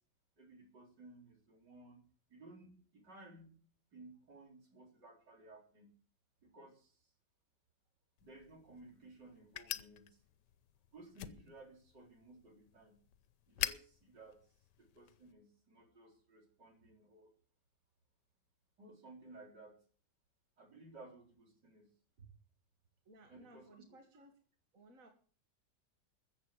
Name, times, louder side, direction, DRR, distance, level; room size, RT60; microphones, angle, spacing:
voice 1, 0.4-2.0 2.3-3.5 3.9-5.9 6.4-7.0 8.2-10.2 10.9-13.0 13.5-14.4 14.8-17.3 18.8-19.8 20.6-21.9 22.2-22.3 23.3-23.8, right 2 dB, 80° right, 2 dB, 4.5 m, -57 dB
sound 1, 8.2-15.3, left 11 dB, 80° left, 1.4 m, -47 dB
voice 2, 23.1-24.4 24.7-25.1, right 1 dB, 50° right, 4 dB, 2.2 m, -60 dB
14.0 x 7.6 x 8.2 m, 0.43 s
omnidirectional pair, 1.8 m